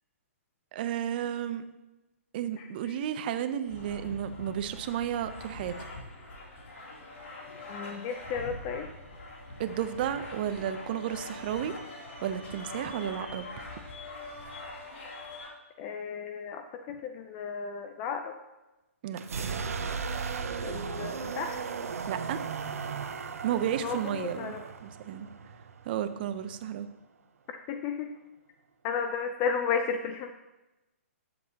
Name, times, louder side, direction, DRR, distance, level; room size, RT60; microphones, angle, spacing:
voice 1, 0.7-1.6 2.3-5.8 9.6-11.7 12.2-13.7 19.0-19.2 22.1-22.4 23.4-24.5 24.8-25.3 25.8-26.9, right 10 dB, 40° right, 11 dB, 0.6 m, -32 dB
sound 1, 3.7-15.5, left 2 dB, 60° left, 3.0 m, -43 dB
voice 2, 7.7-8.9 15.8-18.3 20.6-21.6 23.8-24.6 27.7-28.1 28.8-30.3, left 6 dB, 25° left, 6 dB, 0.5 m, -33 dB
sound 2, 19.1-26.9, right 5 dB, 80° right, 0.8 m, -36 dB
11.0 x 7.8 x 2.9 m, 1.0 s
hypercardioid pair, 150°, 8 cm